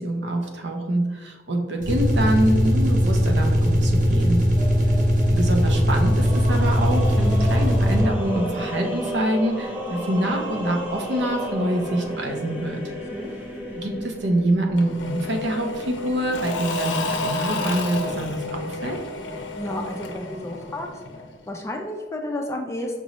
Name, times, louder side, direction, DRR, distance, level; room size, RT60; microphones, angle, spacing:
voice 1, 0.0-4.4 5.3-12.8 13.8-19.0, right 1 dB, 75° right, 3 dB, 0.7 m, -25 dB
sound 1, 1.8-8.3, equal, 45° right, 0.8 m, -20 dB
sound 2, 4.5-20.8, equal, 10° right, 0.8 m, -34 dB
Engine / Mechanisms / Drill, 14.8-21.4, left 2 dB, 85° left, 0.5 m, -31 dB
voice 2, 19.6-20.9 21.5-23.0, left 1 dB, 15° left, 2 dB, 0.4 m, -31 dB
5.2 x 2.6 x 3.0 m, 1.4 s
head